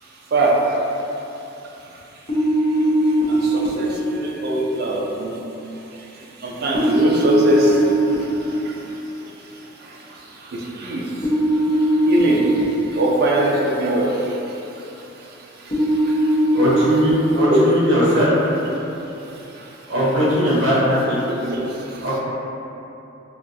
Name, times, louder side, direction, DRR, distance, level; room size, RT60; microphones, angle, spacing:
sound 1, 2.3-3.7 6.7-8.1 11.2-12.6 15.7-17.1, right 1 dB, 30° left, 0.6 m, -19 dB
voice 1, 3.3-3.9 4.1-5.4 6.4-7.8 10.8-11.0 12.1-12.4 13.0-14.1 17.5-17.6 21.4-21.6, right 1 dB, 50° right, -3 dB, 0.4 m, -20 dB
voice 2, 16.5-18.6 19.9-21.2 22.0-22.2, equal, 70° right, -8 dB, 1.0 m, -19 dB
3.4 x 2.3 x 2.6 m, 2.9 s
head